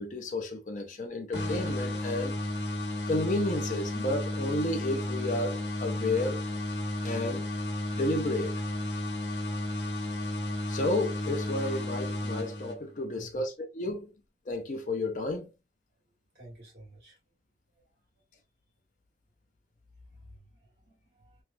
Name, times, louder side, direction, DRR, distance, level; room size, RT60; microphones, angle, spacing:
voice 1, 0.0-2.4 3.1-6.4 7.0-7.4 7.9-8.6 10.7-14.1 14.5-15.5, left 2 dB, 45° left, 0.5 m, -32 dB
sound 1, 1.3-13.0, left 1 dB, 80° left, 0.9 m, -33 dB
voice 2, 13.1-13.5 16.4-17.2 20.2-21.4, right 1 dB, 65° right, 1.6 m, -52 dB
3.1 x 2.3 x 2.5 m
head